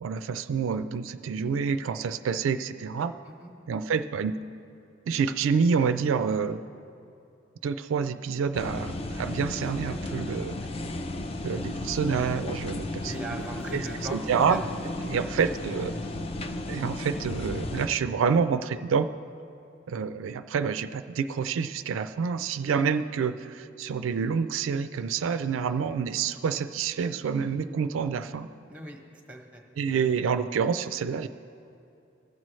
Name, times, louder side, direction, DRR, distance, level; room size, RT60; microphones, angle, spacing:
voice 1, 0.0-3.1 3.7-4.4 5.1-6.6 7.6-10.6 11.4-13.2 13.7-14.6 15.0-15.9 16.7-19.1 19.9-28.5 29.8-31.3, right 6 dB, 85° right, 11 dB, 0.3 m, -28 dB
sound 1, 8.5-17.9, left 2 dB, 30° left, 0.4 m, -34 dB
voice 2, 13.0-14.8 15.1-15.2 15.9-16.1 28.7-29.0 29.3-29.6 29.9-30.1, right 1 dB, 5° right, 2 dB, 0.9 m, -40 dB
17.5 x 7.5 x 3.1 m, 2.7 s
head